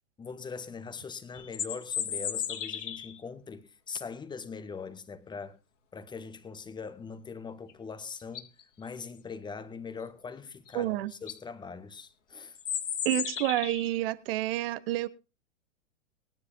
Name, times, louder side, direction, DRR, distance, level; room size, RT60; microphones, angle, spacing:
voice 1, 0.2-5.6 5.9-8.5 8.8-12.6, left 5 dB, 10° left, 1.0 m, -41 dB
sound 1, 1.3-3.2 7.7-7.8 8.2-8.6 10.7-10.8 11.1-11.4 12.5-13.9, left 9 dB, 65° left, 1.9 m, -34 dB
voice 2, 10.7-11.1 13.0-15.1, right 15 dB, 45° right, 0.9 m, -29 dB
21.0 x 9.7 x 2.7 m
figure-of-eight pair, 105°, 40 cm